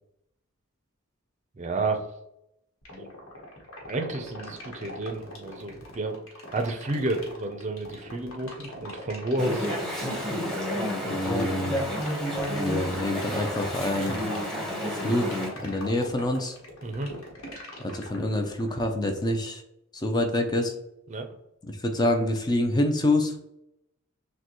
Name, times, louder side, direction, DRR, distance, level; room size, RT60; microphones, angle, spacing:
voice 1, 1.6-2.0 2.9-3.1 3.8-6.2 6.5-9.7 16.8-17.1 21.1-21.3, right 2 dB, 35° right, 6 dB, 0.5 m, -31 dB
sound 1, 2.8-18.8, left 1 dB, 75° left, 1.2 m, -42 dB
Chatter / Stream, 9.4-15.5, equal, ahead, 1.0 m, -30 dB
voice 2, 11.0-12.0 12.6-14.2 14.9-16.6 17.8-19.6 19.9-20.7 21.6-23.4, left 1 dB, 20° left, 4 dB, 0.4 m, -27 dB
6.4 x 2.2 x 2.9 m, 0.81 s
head